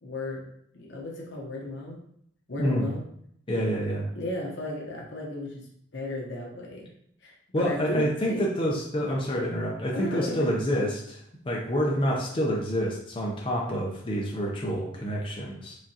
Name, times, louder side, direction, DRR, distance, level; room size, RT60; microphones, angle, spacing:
voice 1, 0.0-0.4 0.7-2.0 2.5-3.0 4.1-5.7 5.9-6.9 7.2-8.5 9.9-10.5, left 1 dB, 65° left, -2 dB, 1.0 m, -34 dB
voice 2, 3.5-4.1 7.5-15.8, equal, 30° left, -2 dB, 0.6 m, -28 dB
4.8 x 3.6 x 2.8 m, 0.70 s
head